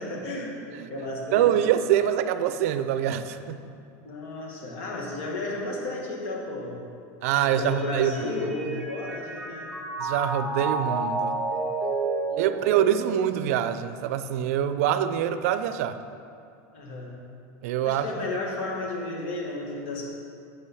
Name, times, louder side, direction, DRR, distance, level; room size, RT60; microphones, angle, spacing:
voice 1, 0.0-1.7 4.0-6.8 7.4-9.7 12.3-12.5 16.7-17.2 17.8-20.1, left 2 dB, 55° left, -2 dB, 2.1 m, -33 dB
voice 2, 1.3-3.7 7.2-8.4 8.7-8.8 10.0-11.4 12.4-16.0 17.6-18.1, right 10 dB, 70° right, 11 dB, 0.5 m, -25 dB
Mallet percussion, 7.6-13.9, right 3 dB, 10° right, 1.1 m, -31 dB
8.2 x 6.4 x 6.2 m, 2.5 s
supercardioid pair, 175°, 8 cm